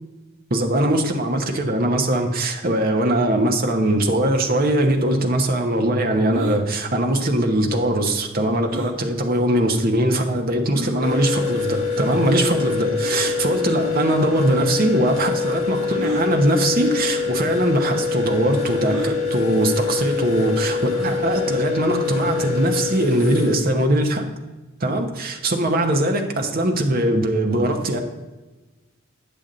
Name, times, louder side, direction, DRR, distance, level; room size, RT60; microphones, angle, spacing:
voice 1, 0.5-24.2 24.8-28.0, right 1 dB, 45° right, 4 dB, 0.9 m, -21 dB
sound 1, 6.3-6.6 8.7-9.0 9.8-9.9 10.7-11.0 13.0-13.3 14.4-14.5 15.9-16.3 17.2-17.3 17.6-17.7 18.9-19.2 20.9-21.3, right 1 dB, 85° right, 0.8 m, -30 dB
sound 2, 11.0-23.6, left 5 dB, 45° left, 2.6 m, -25 dB
8.8 x 7.0 x 3.9 m, 1.2 s
head